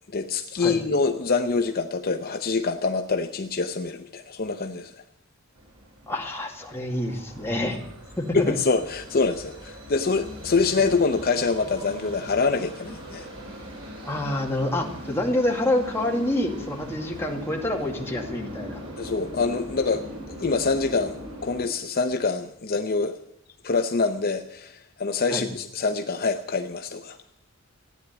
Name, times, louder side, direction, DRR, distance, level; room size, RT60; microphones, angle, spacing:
voice 1, 0.1-5.0 8.3-13.3 19.0-23.1 23.6-27.2, left 4 dB, 45° left, 6 dB, 0.7 m, -25 dB
sound 1, 5.6-21.6, equal, 80° right, 4.7 m, -40 dB
voice 2, 6.1-7.8 8.2-8.6 14.0-18.8 25.3-25.5, left 1 dB, 10° left, 0 dB, 2.1 m, -27 dB
15.0 x 9.8 x 8.0 m, 0.74 s
head